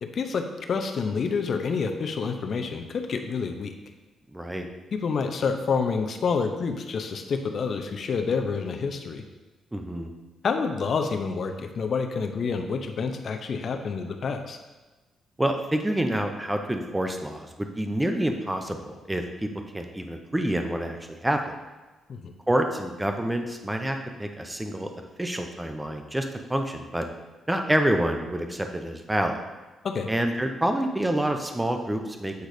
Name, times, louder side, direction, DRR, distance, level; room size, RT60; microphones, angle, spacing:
voice 1, 0.0-3.7 4.9-9.2 10.4-14.6 22.1-22.3 29.8-30.1, left 5 dB, 50° left, 5 dB, 0.7 m, -28 dB
voice 2, 4.3-4.7 9.7-10.1 15.4-19.5 19.7-21.6 22.5-24.9 25.2-27.1 27.5-29.4 30.1-32.5, right 1 dB, 10° right, 5 dB, 0.7 m, -27 dB
8.1 x 3.9 x 5.0 m, 1.2 s
cardioid pair, 105°, 0 cm